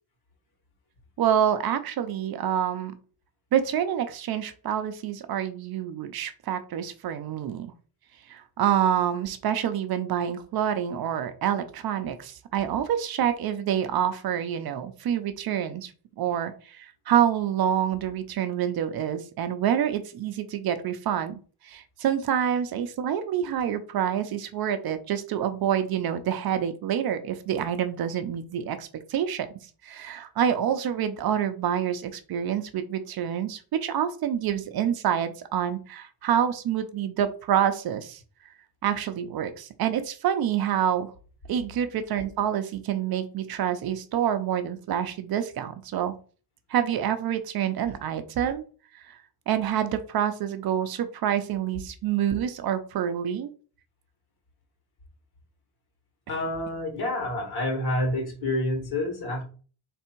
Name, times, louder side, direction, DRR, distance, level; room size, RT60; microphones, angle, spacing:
voice 1, 1.2-2.9 3.5-7.7 8.3-15.9 16.2-29.5 29.8-38.2 38.8-41.1 41.5-46.1 46.7-48.6 48.9-49.2 49.5-53.5, right 9 dB, 60° right, 9 dB, 0.6 m, -27 dB
voice 2, 56.3-59.4, left 1 dB, 60° left, 1 dB, 1.9 m, -28 dB
3.5 x 3.3 x 4.4 m, 0.40 s
cardioid pair, 170°, 43 cm